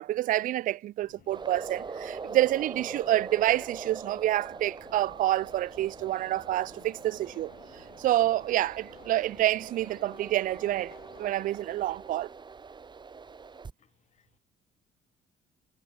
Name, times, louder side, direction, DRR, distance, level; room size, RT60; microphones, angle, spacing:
voice 1, 0.0-7.5 8.0-12.3, right 14 dB, 60° right, 0.4 m, -28 dB
Subway metro underground, 1.0-11.2, left 13 dB, 70° left, 7.0 m, -57 dB
sound 1, 1.3-13.7, right 5 dB, 30° right, 1.1 m, -43 dB
voice 2, 13.8-14.4, left 8 dB, 45° left, 1.0 m, -70 dB
supercardioid pair, 70°, 16 cm